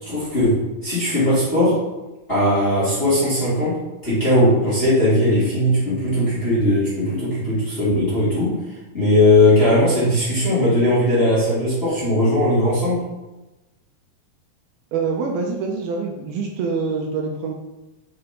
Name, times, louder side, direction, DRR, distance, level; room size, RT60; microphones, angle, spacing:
voice 1, 0.0-1.8 2.3-3.8 4.0-8.5 8.9-13.0, left 1 dB, 20° left, -10 dB, 2.1 m, -18 dB
voice 2, 14.9-17.5, right 4 dB, 75° right, 0 dB, 2.4 m, -25 dB
6.0 x 5.7 x 5.1 m, 1.1 s
omnidirectional pair, 4.8 m